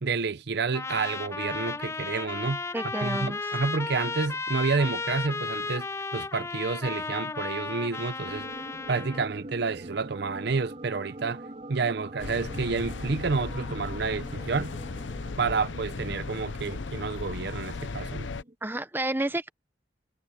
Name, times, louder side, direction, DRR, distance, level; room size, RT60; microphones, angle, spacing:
voice 1, 0.0-2.6 3.0-5.9 6.1-8.5 8.9-11.4 11.7-14.7 15.4-18.3, right 4 dB, 60° right, 0.7 m, -29 dB
Trumpet, 0.7-9.3, left 3 dB, 15° left, 0.3 m, -34 dB
voice 2, 2.7-3.6 18.6-19.5, right 1 dB, 10° right, 0.9 m, -30 dB
sound 1, 8.2-18.5, right 1 dB, 35° right, 4.2 m, -44 dB
sound 2, 12.2-18.4, left 3 dB, 75° left, 0.7 m, -36 dB
head